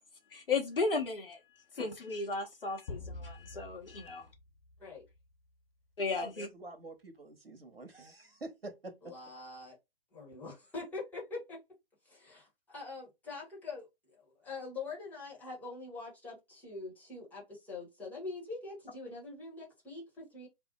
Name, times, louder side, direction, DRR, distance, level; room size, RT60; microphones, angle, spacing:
voice 1, 0.3-1.4 1.7-4.3 6.0-6.5, left 4 dB, 70° left, 0.8 m, -34 dB
sound 1, 2.9-5.4, left 3 dB, 40° left, 0.9 m, -47 dB
voice 2, 6.2-9.1, right 2 dB, 85° right, 0.9 m, -47 dB
voice 3, 9.0-9.8 10.1-11.6 12.0-20.5, left 3 dB, 5° left, 1.0 m, -44 dB
2.6 x 2.0 x 3.7 m
figure-of-eight pair, 130°, 29 cm